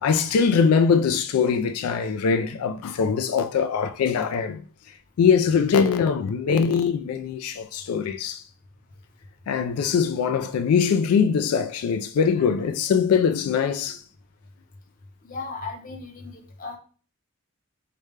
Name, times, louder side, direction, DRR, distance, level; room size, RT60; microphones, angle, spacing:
voice 1, 0.0-4.6 5.2-8.4 9.5-14.0, left 6 dB, 90° left, 0.3 m, -22 dB
voice 2, 15.2-16.8, left 3 dB, 40° left, 0.6 m, -36 dB
5.0 x 2.1 x 3.2 m
head